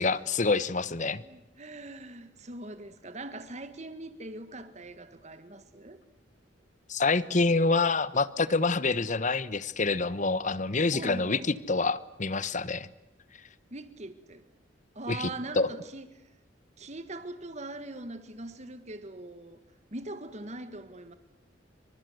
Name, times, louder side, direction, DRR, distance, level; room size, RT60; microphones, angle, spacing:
voice 1, 0.0-1.2 6.9-12.9 15.1-15.3 15.5-15.7, left 3 dB, 40° left, 1.1 m, -27 dB
voice 2, 1.2-6.0 10.9-11.5 13.7-14.4 15.0-16.2 16.8-19.6 19.9-21.1, right 2 dB, 35° right, 1.7 m, -41 dB
28.5 x 25.5 x 8.1 m
head